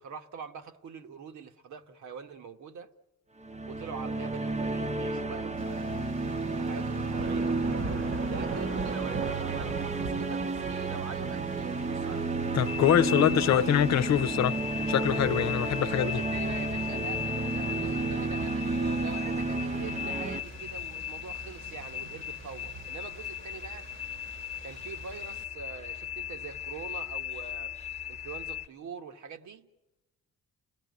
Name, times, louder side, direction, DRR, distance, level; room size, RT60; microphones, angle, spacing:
voice 1, 0.0-2.9 3.6-6.1 6.6-7.6 8.2-12.4 12.8-13.7 16.0-23.9 24.6-27.7 28.1-29.7, right 6 dB, 70° right, 1.5 m, -44 dB
sound 1, 3.4-20.4, right 3 dB, 25° right, 0.9 m, -32 dB
sound 2, 5.6-25.4, right 3 dB, 40° right, 1.2 m, -43 dB
voice 2, 12.5-14.6 14.9-16.1, left 10 dB, 60° left, 0.8 m, -24 dB
sound 3, 12.7-28.7, left 10 dB, 20° left, 1.1 m, -38 dB
30.0 x 17.5 x 9.5 m
cardioid pair, 90°, 30 cm